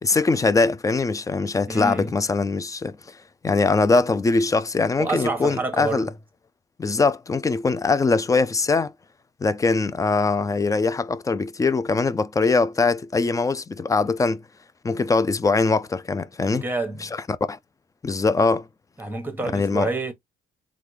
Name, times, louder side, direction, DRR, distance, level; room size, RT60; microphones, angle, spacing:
voice 1, 0.0-3.2 3.4-6.1 6.8-8.9 9.4-14.4 14.8-16.6 17.0-17.1 17.5-17.6 18.0-18.7 19.4-19.9, left 3 dB, 15° left, 0.3 m, -22 dB
voice 2, 1.7-2.2 5.0-6.1 16.5-17.1 19.0-20.1, right 2 dB, 10° right, 1.1 m, -28 dB
3.6 x 2.3 x 3.1 m
cardioid pair, 90°, 20 cm